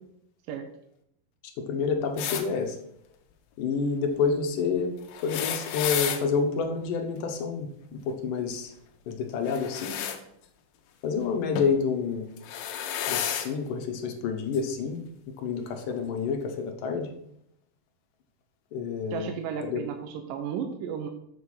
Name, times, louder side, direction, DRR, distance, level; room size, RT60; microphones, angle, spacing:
voice 1, 1.6-2.8 3.6-4.9 5.2-8.7 9.1-10.0 11.0-12.3 13.1-15.1 15.4-17.1 18.7-19.3 19.6-19.8, left 5 dB, 75° left, 5 dB, 2.5 m, -28 dB
sound 1, 2.2-2.5 5.1-6.2 9.4-10.2 11.6-11.8 12.4-13.5 14.5-14.6 15.8-15.9, left 9 dB, 90° left, 2.6 m, -31 dB
voice 2, 19.1-21.1, right 7 dB, 75° right, 4 dB, 2.4 m, -33 dB
7.2 x 6.5 x 5.5 m, 0.74 s
omnidirectional pair, 4.0 m